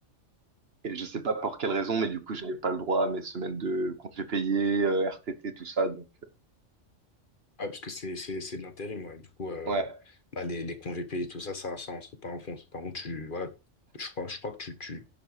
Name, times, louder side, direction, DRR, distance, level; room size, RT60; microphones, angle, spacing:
voice 1, 0.8-6.0 9.7-9.9, right 3 dB, 55° right, 1.3 m, -29 dB
voice 2, 7.6-9.9 10.3-13.5 13.9-15.0, left 2 dB, 45° left, 1.4 m, -37 dB
10.5 x 6.7 x 4.9 m
omnidirectional pair, 1.3 m